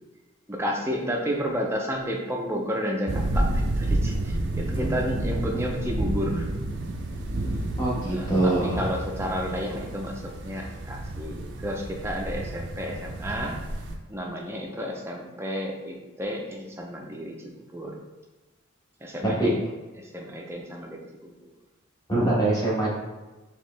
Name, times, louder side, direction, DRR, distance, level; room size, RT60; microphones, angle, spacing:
voice 1, 0.5-6.5 8.0-13.6 14.1-17.3 17.7-17.9 19.0-19.6 20.0-21.3, equal, 15° right, 0 dB, 0.5 m, -31 dB
sound 1, 3.1-13.9, right 1 dB, 65° right, 0.5 m, -30 dB
voice 2, 7.8-8.8 19.4-19.5 22.1-22.9, right 2 dB, 20° left, -6 dB, 1.2 m, -23 dB
4.6 x 3.0 x 3.3 m, 1.2 s
head